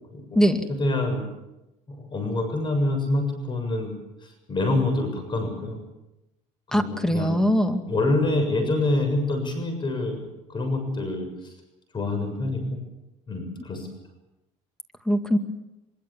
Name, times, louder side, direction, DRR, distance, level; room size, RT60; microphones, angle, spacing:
voice 1, 0.1-0.4 0.7-1.2 1.9-3.9 4.2-5.8 6.7-7.4 7.9-11.3 11.9-12.6 13.3-13.9, left 2 dB, 30° left, 6 dB, 6.9 m, -26 dB
voice 2, 6.7-7.8 15.1-15.4, equal, 5° left, 7 dB, 2.2 m, -21 dB
23.5 x 23.0 x 7.4 m, 0.96 s
cardioid pair, 115°, 15 cm